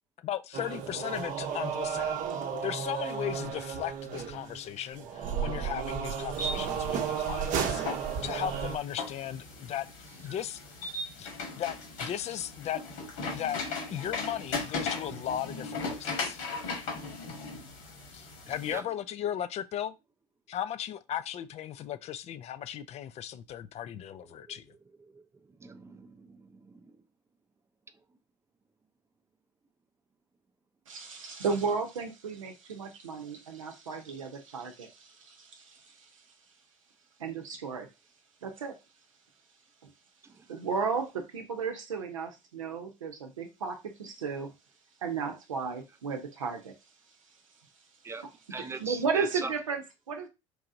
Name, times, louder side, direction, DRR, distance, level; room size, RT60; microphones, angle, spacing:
voice 1, 0.2-2.2 2.6-7.8 8.2-9.9 10.2-10.6 11.2-12.8 13.3-13.6 13.9-16.4 18.1-19.9 20.5-24.7, left 10 dB, 40° left, 0.4 m, -36 dB
sound 1, 0.5-8.8, right 7 dB, 55° right, 0.7 m, -33 dB
sound 2, 6.3-18.8, left 3 dB, 70° left, 1.5 m, -38 dB
voice 2, 25.6-26.8 48.0-48.2 48.5-49.5, right 4 dB, 15° right, 0.6 m, -39 dB
voice 3, 30.9-36.1 37.2-37.9 38.4-38.8 39.8-39.9 40.5-44.5 45.0-46.7 48.6-50.3, right 5 dB, 90° right, 0.7 m, -34 dB
4.5 x 2.8 x 2.5 m
hypercardioid pair, 70°, 16 cm